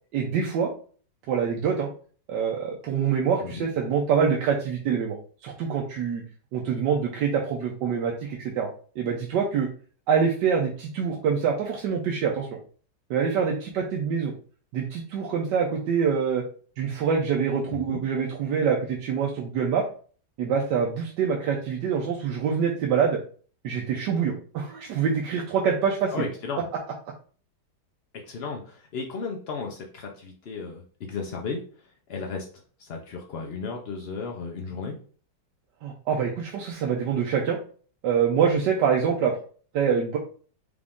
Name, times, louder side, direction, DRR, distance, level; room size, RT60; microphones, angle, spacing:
voice 1, 0.1-0.7 1.3-1.9 2.3-5.2 5.4-6.2 6.5-8.7 9.0-9.7 10.1-12.5 13.1-14.3 14.7-16.4 16.8-19.8 20.4-23.2 23.6-26.3 35.8-37.6 38.0-39.3 39.7-40.2, right 6 dB, 90° right, -1 dB, 1.3 m, -25 dB
voice 2, 17.7-18.0 26.1-26.6 28.1-32.5 32.8-35.0, left 4 dB, 70° left, 1 dB, 0.5 m, -34 dB
4.9 x 2.5 x 3.5 m, 0.42 s
omnidirectional pair, 1.8 m